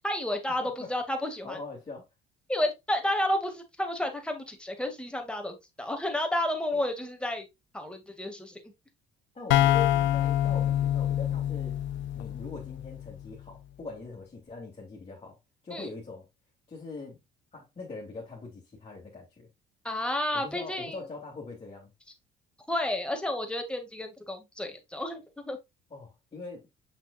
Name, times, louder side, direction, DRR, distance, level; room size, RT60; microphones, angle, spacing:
voice 1, 0.0-1.6 2.5-7.4 7.7-8.6 15.7-15.9 19.8-21.0 22.7-25.6, left 1 dB, 5° left, 2.3 m, -31 dB
voice 2, 0.6-0.9 1.4-2.0 6.7-6.8 9.3-11.8 12.1-15.4 15.6-16.3 16.7-17.2 17.5-19.5 20.3-21.9 25.9-26.7, left 3 dB, 30° left, 2.9 m, -42 dB
sound 1, 9.5-13.2, left 12 dB, 70° left, 0.5 m, -26 dB
6.5 x 5.9 x 2.5 m
supercardioid pair, 65°, 20 cm